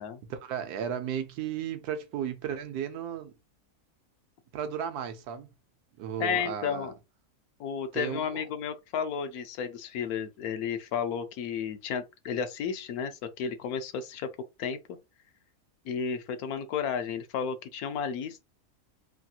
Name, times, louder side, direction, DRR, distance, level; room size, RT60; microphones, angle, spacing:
voice 1, 0.3-3.3 4.5-5.5 6.0-6.9 7.9-8.4, right 8 dB, 80° right, 1.1 m, -34 dB
voice 2, 6.2-6.9 7.6-14.3 14.6-15.0 15.8-18.4, left 7 dB, 75° left, 1.0 m, -32 dB
3.3 x 2.3 x 2.7 m
omnidirectional pair, 1.6 m